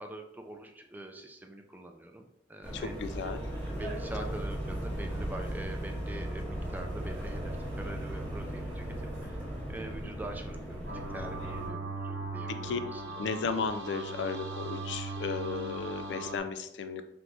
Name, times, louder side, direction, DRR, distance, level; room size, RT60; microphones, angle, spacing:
voice 1, 0.0-2.9 3.7-8.9 9.2-9.4 9.7-13.3, right 1 dB, 10° right, 4 dB, 0.4 m, -44 dB
sound 1, 2.6-11.7, right 1 dB, 10° left, 1.2 m, -37 dB
voice 2, 2.7-3.4 12.5-12.8 13.2-17.0, left 5 dB, 80° left, 9 dB, 0.4 m, -34 dB
sound 2, 10.9-16.4, right 3 dB, 75° right, 0.7 m, -39 dB
3.4 x 3.1 x 3.9 m, 0.79 s
head